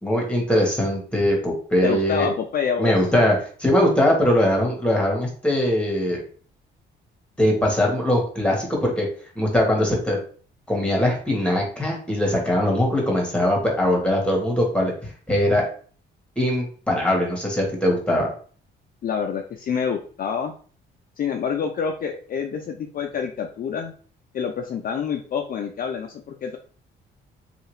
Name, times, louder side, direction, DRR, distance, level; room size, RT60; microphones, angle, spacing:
voice 1, 0.0-2.3 2.8-6.2 7.4-9.1 9.3-10.2 10.7-15.6 16.4-18.3, left 1 dB, 5° left, -1 dB, 1.3 m, -21 dB
voice 2, 1.8-3.1 19.0-20.5 21.2-23.9 24.3-26.6, left 6 dB, 45° left, 3 dB, 0.4 m, -27 dB
2.7 x 2.4 x 3.1 m, 0.42 s
cardioid pair, 90°, 20 cm